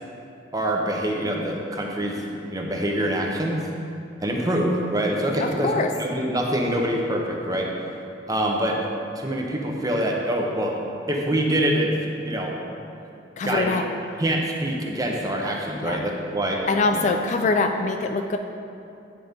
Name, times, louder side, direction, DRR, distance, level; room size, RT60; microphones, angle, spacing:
voice 1, 0.5-3.7 4.2-5.7 6.0-7.7 8.3-8.8 9.2-10.8 11.1-12.6 13.4-13.7 14.2-16.6 16.9-17.0, right 1 dB, 20° right, 0 dB, 0.7 m, -25 dB
voice 2, 13.4-13.8 15.8-16.0 16.7-18.4, left 3 dB, 40° left, 5 dB, 0.3 m, -23 dB
9.3 x 3.9 x 5.1 m, 2.6 s
head